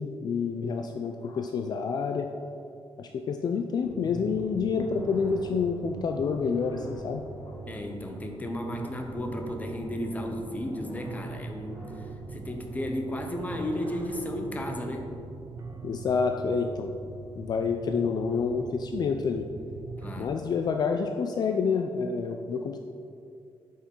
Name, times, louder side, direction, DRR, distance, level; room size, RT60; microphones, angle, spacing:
voice 1, 0.0-2.3 3.0-7.2 15.8-16.9 17.4-19.5 20.2-22.8, left 5 dB, 45° left, 5 dB, 0.4 m, -28 dB
sound 1, 3.8-20.3, right 4 dB, 45° right, 0.6 m, -42 dB
sound 2, 4.8-14.8, right 1 dB, 15° right, 1.7 m, -46 dB
voice 2, 7.7-15.1 20.0-20.3, left 1 dB, 15° left, 3 dB, 0.7 m, -34 dB
8.2 x 5.6 x 4.5 m, 2.4 s
wide cardioid pair, 170°, 10 cm